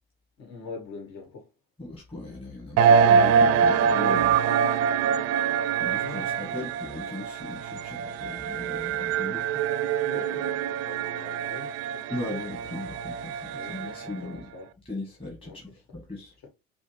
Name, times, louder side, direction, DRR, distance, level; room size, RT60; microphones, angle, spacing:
voice 1, 0.4-1.5 6.0-6.7 10.0-12.2 13.5-14.7 15.4-15.8 16.4-16.5, left 4 dB, 60° left, 1.8 m, -43 dB
voice 2, 1.8-4.4 5.8-9.6 12.1-14.5 14.9-16.3, left 2 dB, 20° left, 1.5 m, -38 dB
sound 1, 2.8-14.2, right 7 dB, 55° right, 0.5 m, -24 dB
5.0 x 2.1 x 3.2 m
hypercardioid pair, 65°, 30 cm